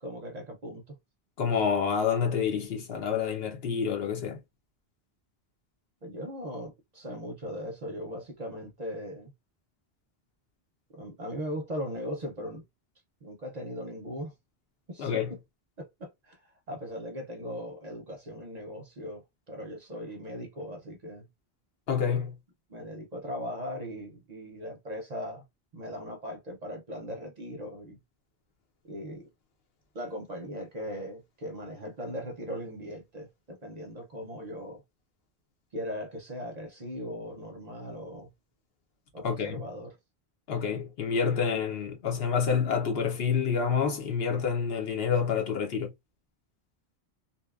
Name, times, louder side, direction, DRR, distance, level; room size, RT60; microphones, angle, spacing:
voice 1, 0.0-1.0 6.0-9.3 10.9-12.6 13.2-14.3 14.9-15.4 15.8-21.3 22.7-25.4 25.7-28.0 28.9-29.3 29.9-34.8 35.7-38.3 39.1-40.0, equal, 45° right, 0.6 m, -39 dB
voice 2, 1.4-4.4 15.0-15.3 21.9-22.3 39.2-39.6 40.5-45.9, left 6 dB, 65° left, 0.9 m, -28 dB
2.7 x 2.2 x 2.3 m
omnidirectional pair, 1.1 m